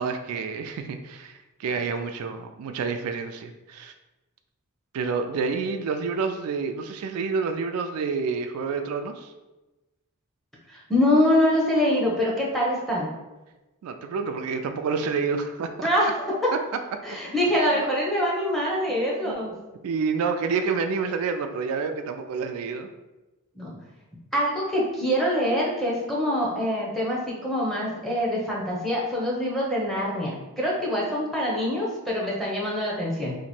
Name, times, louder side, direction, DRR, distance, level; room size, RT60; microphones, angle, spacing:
voice 1, 0.0-3.9 4.9-9.3 13.8-15.9 19.3-19.4 19.8-22.9, right 5 dB, 70° right, 7 dB, 0.3 m, -28 dB
voice 2, 10.7-13.1 15.8-16.4 17.0-19.5 23.6-23.7 24.3-33.3, equal, ahead, -5 dB, 0.8 m, -24 dB
2.9 x 2.5 x 4.2 m, 1.1 s
head